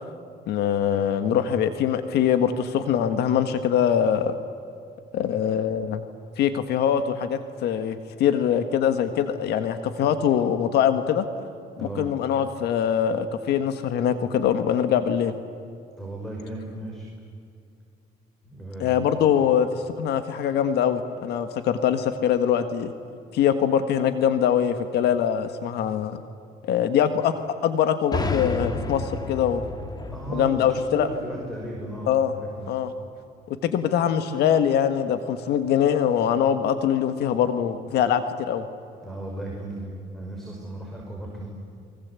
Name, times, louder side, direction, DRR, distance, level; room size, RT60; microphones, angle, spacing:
voice 1, 0.5-4.3 5.1-6.0 6.4-11.3 11.8-15.3 18.8-22.9 23.3-26.2 26.6-27.3 27.6-29.7 30.3-31.1 32.1-32.3 32.7-32.9 33.6-38.6, left 9 dB, 75° left, 9 dB, 1.6 m, -23 dB
voice 2, 11.8-12.1 16.0-17.1 18.4-19.1 30.1-32.7 39.0-41.5, right 1 dB, ahead, -1 dB, 5.6 m, -35 dB
sound 1, 28.1-31.8, left 3 dB, 25° left, 2.6 m, -31 dB
30.0 x 23.5 x 8.4 m, 2.5 s
cardioid pair, 110°, 17 cm